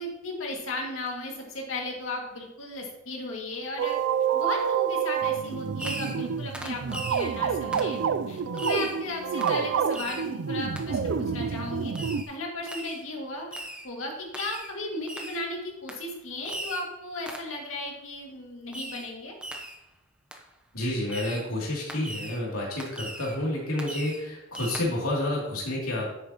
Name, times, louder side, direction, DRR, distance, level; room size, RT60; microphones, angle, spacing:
voice 1, 0.0-4.0 4.3-8.0 8.3-19.3, left 2 dB, 65° left, 0 dB, 2.2 m, -35 dB
sound 1, 3.8-12.2, right 7 dB, 60° right, 0.4 m, -28 dB
Fireworks, 5.8-6.3 6.5-7.3 7.7-7.9 8.6-9.0 9.4-9.6 9.9-10.3 10.8-10.9 12.0-12.3 12.7-13.0 13.5-13.9 14.3-14.7 15.1-15.5 15.9-16.0 16.5-16.9 17.3-17.5 18.7-19.1 19.4-19.8 20.3-20.4 21.1-21.5 21.9-22.4 22.8-23.4 23.8-24.2 24.5-24.8, right 1 dB, 5° right, 0.8 m, -38 dB
voice 2, 20.7-26.1, left 1 dB, 90° left, -4 dB, 2.8 m, -29 dB
10.5 x 8.5 x 3.0 m, 0.89 s
head